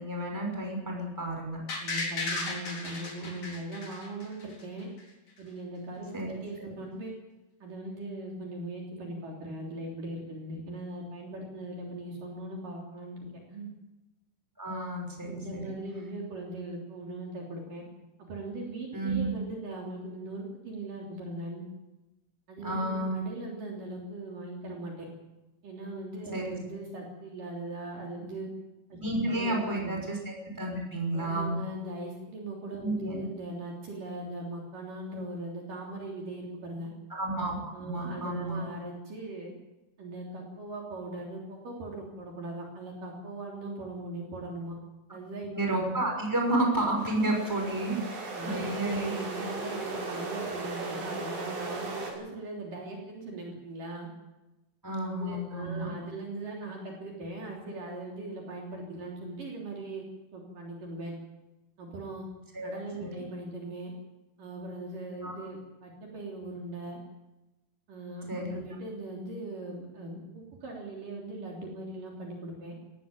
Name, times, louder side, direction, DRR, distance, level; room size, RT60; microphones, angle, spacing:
voice 1, 0.0-1.6 6.1-6.3 14.6-15.7 18.9-19.3 22.6-23.2 26.3-26.6 29.0-31.6 32.8-33.2 37.2-38.6 45.5-49.1 54.8-55.9 62.5-62.7 63.0-63.2 65.2-65.4 68.3-68.6, right 1 dB, 5° right, 0 dB, 5.6 m, -31 dB
sound 1, 1.7-4.6 5.0-5.1, left 3 dB, 45° left, 4.9 m, -35 dB
voice 2, 1.8-4.9 5.4-7.1 7.6-13.7 15.3-17.8 18.2-21.6 22.5-25.1 25.6-28.5 28.9-29.0 29.3-30.0 31.1-36.9 37.7-39.5 40.0-44.7 45.1-45.9 48.3-54.1 55.0-60.0 60.3-61.1 61.8-62.2 62.6-63.9 64.4-67.0 67.9-72.8, right 2 dB, 50° right, -1 dB, 4.8 m, -40 dB
sound 2, 47.0-52.1, right 3 dB, 75° right, 7.4 m, -37 dB
18.5 x 16.5 x 9.1 m, 1.0 s
omnidirectional pair, 4.9 m